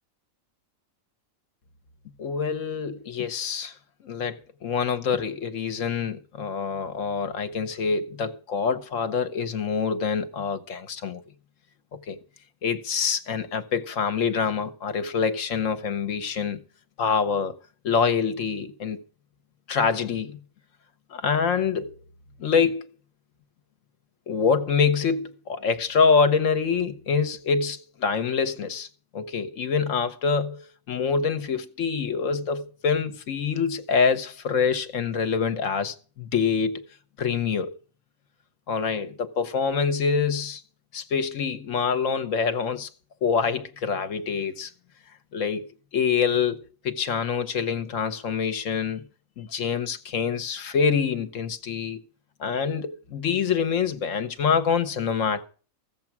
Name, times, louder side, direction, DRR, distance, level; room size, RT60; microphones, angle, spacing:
voice 1, 2.2-3.7 4.0-11.2 12.1-12.2 12.6-16.6 17.0-17.6 17.8-19.0 19.7-20.4 21.1-21.9 22.4-22.9 24.3-28.9 29.1-36.8 37.2-37.7 38.7-40.6 40.9-42.9 43.2-44.7 45.3-46.6 46.8-49.0 49.4-52.0 52.4-55.5, left 6 dB, 70° left, 1.2 m, -25 dB
14.5 x 7.3 x 5.9 m
omnidirectional pair, 1.4 m